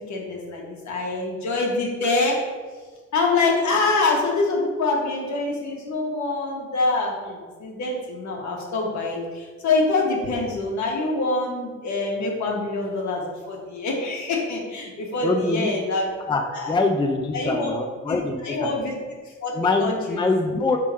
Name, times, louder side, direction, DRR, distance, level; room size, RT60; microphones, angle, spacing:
voice 1, 0.1-2.4 3.1-16.1 16.5-16.8 17.3-17.8 18.1-18.9 19.4-19.5 19.8-20.4, left 3 dB, 70° left, -1 dB, 1.5 m, -25 dB
voice 2, 15.2-15.7 16.3-18.7 19.5-20.8, left 3 dB, 15° left, 3 dB, 0.5 m, -24 dB
4.7 x 3.7 x 5.4 m, 1.4 s
cardioid pair, 90°, 30 cm